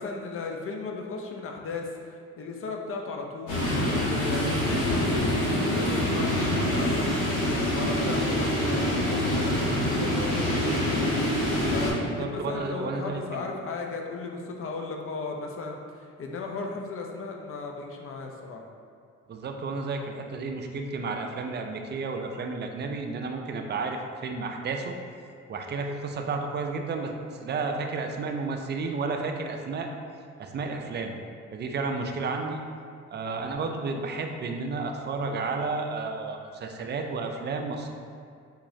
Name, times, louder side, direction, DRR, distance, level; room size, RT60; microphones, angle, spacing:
voice 1, 0.0-11.1 11.7-18.6, left 3 dB, 45° left, 2 dB, 0.5 m, -36 dB
sound 1, 3.5-11.9, left 1 dB, 80° left, 1.1 m, -25 dB
voice 2, 12.0-13.4 19.3-24.9 25.5-27.1 27.4-29.9 30.4-31.1 31.5-32.6 33.1-37.9, right 4 dB, 35° right, 3 dB, 0.4 m, -32 dB
3.8 x 3.0 x 2.7 m, 2.4 s
cardioid pair, 90°, 30 cm